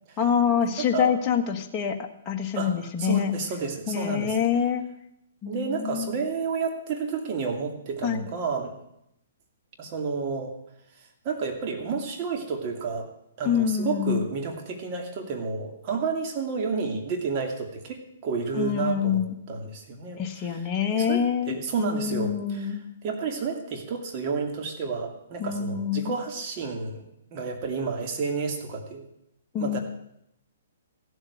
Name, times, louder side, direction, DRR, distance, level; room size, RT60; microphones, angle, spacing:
voice 1, 0.2-2.0 2.2-3.3 3.9-4.8 5.4-6.1 8.0-8.3 13.4-14.2 18.5-19.4 20.2-22.8 25.4-26.1 29.5-29.8, left 8 dB, 25° left, 2 dB, 1.6 m, -26 dB
voice 2, 0.8-1.1 2.5-4.4 5.4-8.7 9.8-10.5 11.0-13.1 13.4-19.2 19.5-27.0 27.3-29.1 29.6-29.8, right 5 dB, 40° right, 3 dB, 2.6 m, -31 dB
15.0 x 8.0 x 8.6 m, 0.78 s
hypercardioid pair, 145°, 0 cm